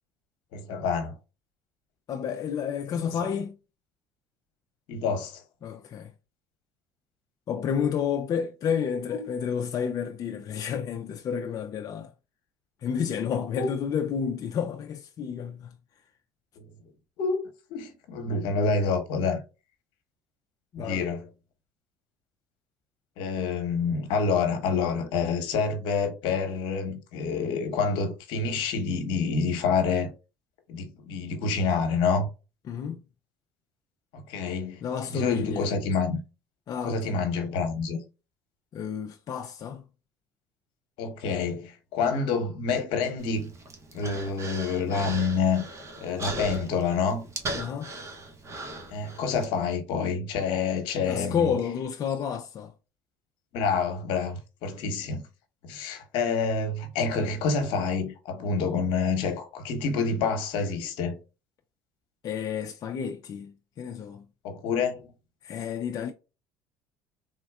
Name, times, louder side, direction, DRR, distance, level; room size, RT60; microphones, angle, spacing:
voice 1, 0.5-1.1 2.9-3.0 3.3-3.4 4.9-5.4 9.2-9.3 13.5-13.7 16.6-16.7 17.2-17.4 17.7-19.4 20.8-21.3 23.2-30.1 30.7-32.3 34.1-34.8 35.1-36.2 36.8-38.0 41.0-43.5 43.9-45.6 46.0-47.2 48.9-51.5 53.5-55.2 55.6-61.2 64.4-65.1, left 5 dB, 70° left, 0.9 m, -27 dB
voice 2, 2.1-3.5 5.6-6.1 7.5-12.1 12.8-15.8 20.7-21.0 32.7-33.0 34.8-35.7 36.7-37.1 38.7-39.8 47.5-47.9 51.0-52.7 62.2-64.2 65.4-66.1, left 7 dB, 45° left, 0.4 m, -30 dB
Human voice, 43.2-49.5, right 2 dB, 35° right, 0.9 m, -38 dB
3.5 x 2.2 x 2.3 m
supercardioid pair, 85°, 9 cm